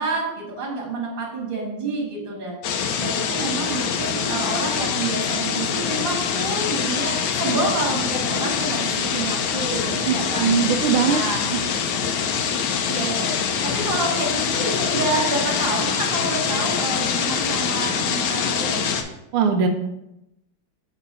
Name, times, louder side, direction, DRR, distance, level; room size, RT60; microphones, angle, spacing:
voice 1, 0.0-10.5 11.1-11.4 12.9-13.3 13.6-18.8, right 2 dB, 30° right, -3 dB, 1.7 m, -28 dB
sound 1, 2.6-19.0, left 6 dB, 70° left, 1.0 m, -24 dB
voice 2, 10.1-11.2 11.5-11.6 19.3-19.7, right 6 dB, 85° right, 4 dB, 1.4 m, -20 dB
6.7 x 3.0 x 5.4 m, 0.87 s
omnidirectional pair, 2.3 m